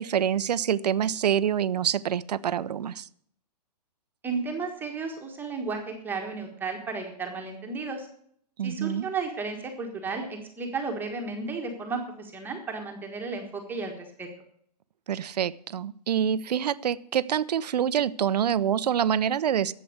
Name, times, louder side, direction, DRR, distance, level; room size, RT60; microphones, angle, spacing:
voice 1, 0.0-3.1 8.6-9.1 15.1-19.7, right 9 dB, 75° right, 17 dB, 0.7 m, -26 dB
voice 2, 4.2-8.1 8.6-14.3, right 4 dB, 10° right, 2 dB, 1.5 m, -33 dB
12.0 x 7.7 x 8.0 m, 0.65 s
hypercardioid pair, 150°, 21 cm